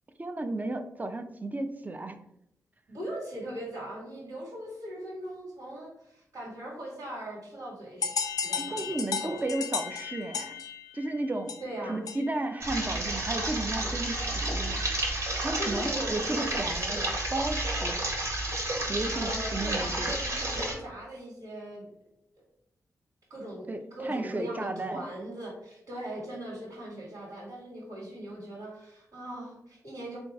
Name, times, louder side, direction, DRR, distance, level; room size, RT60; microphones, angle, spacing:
voice 1, 0.2-2.2 8.6-10.5 10.9-11.6 11.9-14.8 15.4-17.0 17.3-18.0 18.9-20.1 23.7-25.1, right 2 dB, 25° right, 8 dB, 0.4 m, -33 dB
voice 2, 2.9-8.1 8.4-9.4 11.6-12.0 15.6-17.1 19.1-21.9 23.3-30.2, right 1 dB, 80° right, -4 dB, 1.5 m, -39 dB
sound 1, 8.0-12.5, left 6 dB, 80° left, 0.4 m, -35 dB
sound 2, 12.6-20.7, right 1 dB, 50° right, 1.1 m, -31 dB
3.4 x 2.3 x 3.9 m, 0.79 s
cardioid pair, 70°, 6 cm